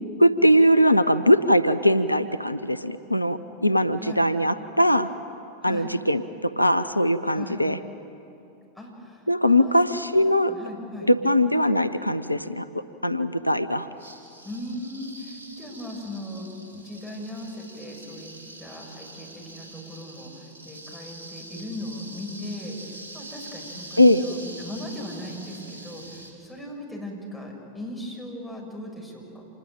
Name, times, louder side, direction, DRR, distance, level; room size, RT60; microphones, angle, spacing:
voice 1, 0.2-5.1 5.6-7.8 9.3-10.5 11.1-12.7 13.0-13.9 24.0-24.2, equal, 85° left, 12 dB, 0.7 m, -21 dB
voice 2, 8.7-11.1 14.4-18.3 18.6-29.4, left 1 dB, ahead, -2 dB, 6.7 m, -38 dB
sound 1, 14.0-26.3, right 1 dB, 70° right, 4.9 m, -44 dB
27.0 x 20.0 x 9.1 m, 2.8 s
figure-of-eight pair, 90°, 0 cm